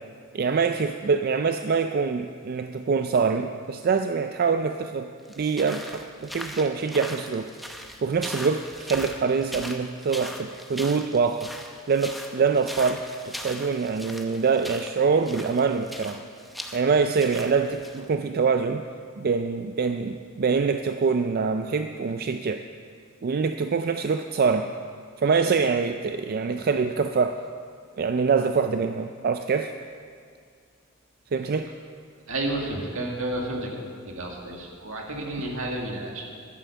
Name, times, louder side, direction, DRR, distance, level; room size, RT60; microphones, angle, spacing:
voice 1, 0.3-5.1 5.4-7.5 7.8-11.5 11.9-16.2 16.7-18.8 19.2-22.6 23.2-24.7 25.2-27.5 28.0-29.7 31.3-31.7, right 5 dB, 45° right, 7 dB, 0.4 m, -25 dB
sound 1, 5.2-18.0, equal, ahead, 0.8 m, -40 dB
voice 2, 32.3-33.8 34.1-36.2, right 1 dB, 65° right, 0 dB, 2.0 m, -31 dB
11.5 x 9.3 x 6.9 m, 2.2 s
head